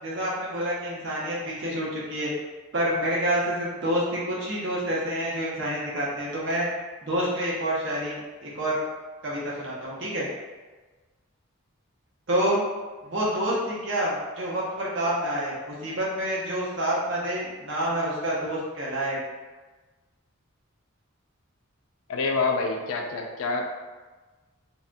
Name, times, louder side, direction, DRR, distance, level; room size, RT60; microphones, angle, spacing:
voice 1, 0.0-2.3 2.7-6.7 7.0-8.8 9.2-10.3 12.3-12.6 13.0-19.2, right 1 dB, 60° right, -6 dB, 0.7 m, -28 dB
voice 2, 22.1-23.6, left 3 dB, 75° left, 2 dB, 0.3 m, -26 dB
3.3 x 2.2 x 2.5 m, 1.3 s
head